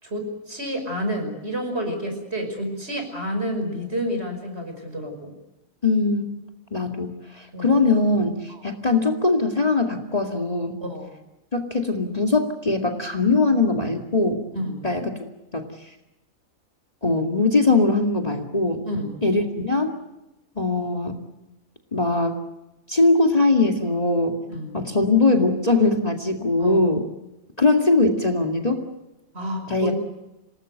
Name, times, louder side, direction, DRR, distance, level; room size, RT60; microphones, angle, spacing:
voice 1, 0.0-5.3 7.5-7.8 8.5-8.6 10.8-11.1 14.5-14.8 18.8-19.1 24.5-24.7 26.6-26.9 29.3-29.9, equal, 50° right, 5 dB, 5.8 m, -29 dB
voice 2, 5.8-6.2 6.7-10.8 11.5-14.4 14.8-15.1 15.5-15.7 17.0-18.8 19.2-19.9 20.6-21.2 21.9-22.4 22.9-24.4 24.7-27.0 27.6-28.8 29.7-29.9, left 3 dB, 30° left, 3 dB, 2.3 m, -21 dB
27.5 x 19.0 x 7.9 m, 0.98 s
omnidirectional pair, 1.4 m